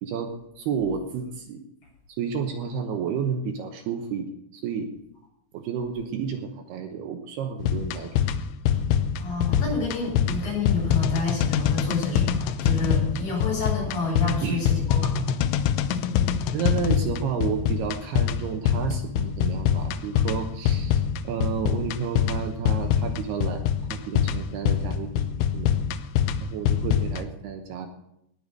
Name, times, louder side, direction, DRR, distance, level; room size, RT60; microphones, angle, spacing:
voice 1, 0.0-1.6 2.2-4.9 5.5-8.1 14.3-14.6 16.5-23.6 23.9-25.7 26.4-27.9, right 7 dB, 70° right, 5 dB, 2.8 m, -31 dB
sound 1, 7.6-27.2, left 8 dB, 85° left, 3.0 m, -25 dB
voice 2, 9.2-15.3, left 3 dB, 50° left, -4 dB, 8.9 m, -29 dB
19.5 x 7.0 x 6.5 m, 0.79 s
omnidirectional pair, 5.2 m